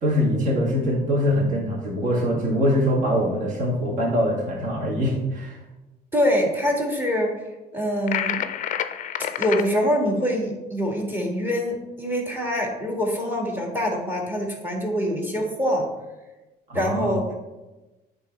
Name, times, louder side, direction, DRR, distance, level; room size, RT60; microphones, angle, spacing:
voice 1, 0.0-5.6 16.7-17.2, equal, 50° right, -2 dB, 1.8 m, -23 dB
voice 2, 6.1-7.3 7.7-8.4 9.4-15.9 16.7-17.2, equal, 10° right, 0 dB, 1.6 m, -24 dB
sound 1, 8.1-9.7, left 10 dB, 50° left, 0.4 m, -27 dB
8.7 x 3.3 x 4.4 m, 1.1 s
cardioid pair, 110°, 17 cm